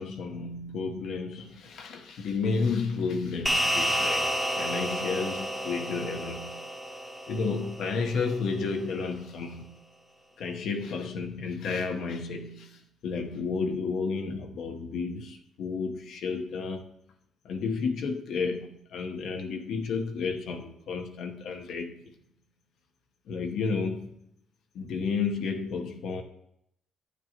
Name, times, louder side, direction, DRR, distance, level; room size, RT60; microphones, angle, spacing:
voice 1, 0.0-6.7 7.3-9.8 10.4-16.9 17.4-21.9 23.3-24.1 24.7-26.2, left 4 dB, 75° left, 1.0 m, -32 dB
sound 1, 3.5-8.1, equal, ahead, 1.0 m, -30 dB
11.5 x 9.1 x 2.9 m
cardioid pair, 90°, 0 cm